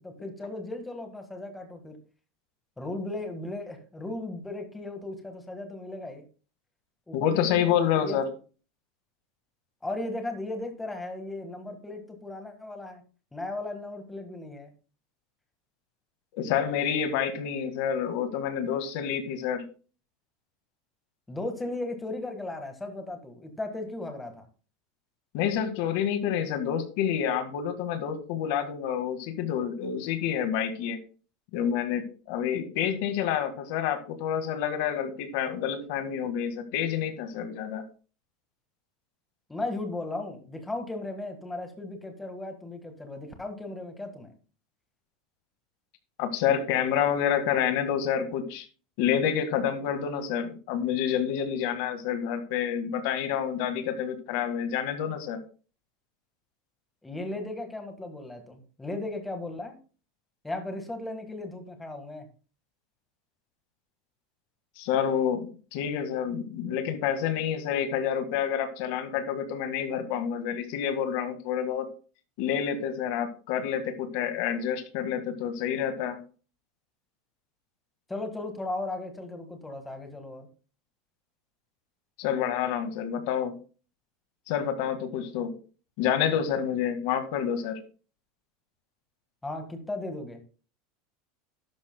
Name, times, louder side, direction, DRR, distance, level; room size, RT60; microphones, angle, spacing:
voice 1, 0.0-2.0 2.8-6.2 7.1-8.2 9.8-13.0 13.3-14.7 21.3-24.4 39.5-44.3 57.0-59.7 60.4-62.3 78.1-80.5 89.4-90.4, left 2 dB, 5° left, 5 dB, 1.6 m, -36 dB
voice 2, 7.1-8.2 16.4-19.6 25.3-31.0 31.5-37.8 46.2-48.7 49.0-55.4 64.8-71.9 72.4-76.2 82.2-83.5 84.5-85.5 86.0-87.8, left 8 dB, 55° left, 8 dB, 1.8 m, -28 dB
13.0 x 11.5 x 2.2 m, 0.37 s
supercardioid pair, 175°, 0 cm